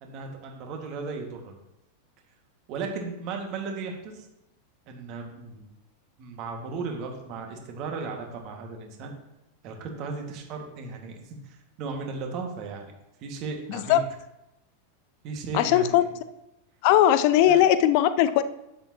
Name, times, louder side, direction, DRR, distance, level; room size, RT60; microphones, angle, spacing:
voice 1, 0.0-1.5 2.7-4.3 4.9-5.7 6.2-9.1 9.6-12.9 13.2-14.0 15.2-16.1 17.4-17.6, right 4 dB, 40° right, 2 dB, 2.0 m, -36 dB
voice 2, 13.7-14.0 15.5-16.0 16.8-18.4, left 12 dB, 45° left, 13 dB, 0.6 m, -19 dB
11.0 x 9.3 x 3.0 m, 0.90 s
figure-of-eight pair, 90°, 0 cm